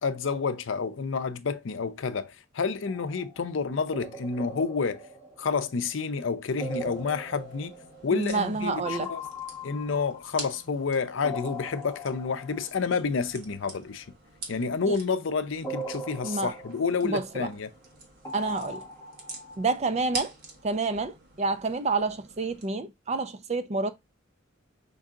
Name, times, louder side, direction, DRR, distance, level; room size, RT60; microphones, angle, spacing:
voice 1, 0.0-5.1 5.4-7.7 8.0-9.2 9.6-14.1 14.5-17.7, left 5 dB, 70° left, 0.5 m, -29 dB
sound 1, 2.9-3.4 3.9-6.0 6.6-8.6 8.8-10.8 11.2-13.0 15.6-17.5 18.2-20.2, equal, 15° left, 1.3 m, -40 dB
sound 2, 6.5-22.7, right 3 dB, 50° right, 1.3 m, -46 dB
voice 2, 8.1-9.1 14.9-15.0 16.2-16.5 17.0-17.5 18.3-18.8 19.6-20.3 20.6-23.9, right 3 dB, 35° right, 0.5 m, -28 dB
5.3 x 2.7 x 3.7 m
head